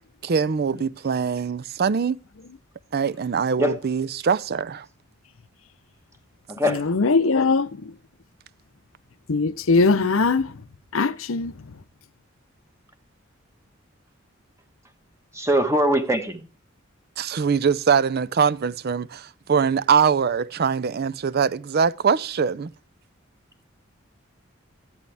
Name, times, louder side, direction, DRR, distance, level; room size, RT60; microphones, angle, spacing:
voice 1, 0.2-2.2 2.9-4.9 17.2-22.7, right 6 dB, 50° right, 0.4 m, -23 dB
voice 2, 6.7-7.7 9.3-10.5 10.9-11.5, left 4 dB, 85° left, 0.7 m, -20 dB
voice 3, 15.4-16.4, equal, 15° right, 1.2 m, -21 dB
13.0 x 10.5 x 3.4 m
head